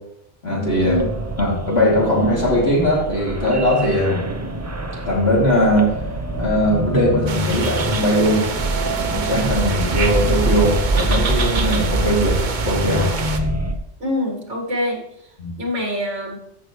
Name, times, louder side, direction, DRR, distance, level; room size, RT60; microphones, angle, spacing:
voice 1, 0.4-1.0 1.4-4.3 5.1-5.9 6.4-8.4 8.7-13.1 15.4-15.5, equal, 60° left, -4 dB, 3.0 m, -19 dB
sound 1, 0.7-13.7, right 2 dB, 20° right, 0.4 m, -25 dB
sound 2, 7.3-13.4, right 4 dB, 45° right, 0.9 m, -27 dB
voice 2, 14.0-15.0 15.6-16.4, left 1 dB, 75° right, 1 dB, 2.3 m, -24 dB
14.0 x 6.5 x 3.1 m, 0.78 s
omnidirectional pair, 1.2 m